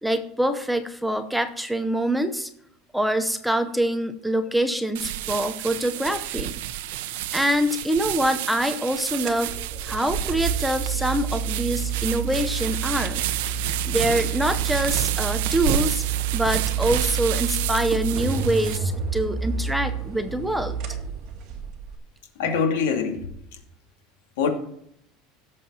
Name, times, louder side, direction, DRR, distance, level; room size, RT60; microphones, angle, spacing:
voice 1, 0.0-2.5 2.9-6.6 7.3-9.5 9.8-16.0 16.3-20.8, right 1 dB, ahead, 8 dB, 0.7 m, -25 dB
sound 1, 4.9-18.8, right 13 dB, 80° right, 0.8 m, -30 dB
sound 2, 9.1-21.9, right 6 dB, 40° right, 2.3 m, -29 dB
voice 2, 22.4-23.3 24.4-24.5, left 6 dB, 90° left, 4 dB, 2.6 m, -23 dB
17.0 x 7.4 x 4.3 m, 0.72 s
cardioid pair, 175°, 0 cm